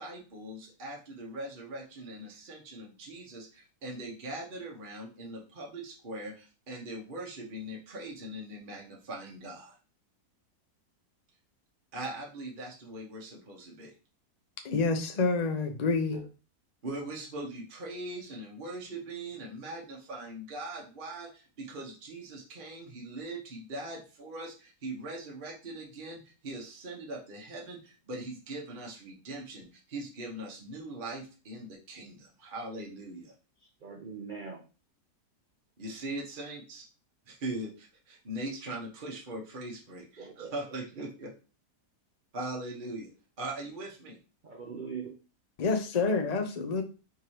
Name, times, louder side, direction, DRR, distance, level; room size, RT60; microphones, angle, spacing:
voice 1, 0.0-9.8 11.9-13.9 16.8-33.3 35.8-36.8 37.3-41.3 42.3-43.1 43.4-44.2, right 1 dB, 35° right, 1.1 m, -41 dB
voice 2, 14.6-16.2 45.6-46.8, left 4 dB, 55° left, 0.4 m, -28 dB
voice 3, 33.8-34.6 40.2-40.8 44.4-45.2, right 5 dB, 85° right, 0.4 m, -42 dB
4.8 x 3.6 x 2.9 m
omnidirectional pair, 1.7 m